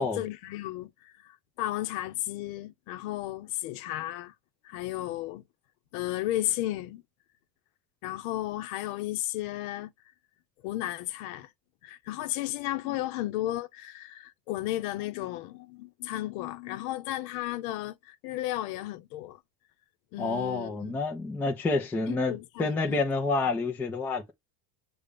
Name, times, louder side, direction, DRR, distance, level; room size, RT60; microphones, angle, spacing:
voice 1, 0.0-4.3 4.6-5.4 5.9-7.0 8.0-9.9 10.6-11.5 11.8-19.4 20.1-21.0 22.1-23.0, left 15 dB, 65° left, 0.9 m, -34 dB
voice 2, 20.2-24.3, left 3 dB, 5° left, 0.4 m, -28 dB
6.7 x 2.4 x 3.3 m
cardioid pair, 160°, 45 cm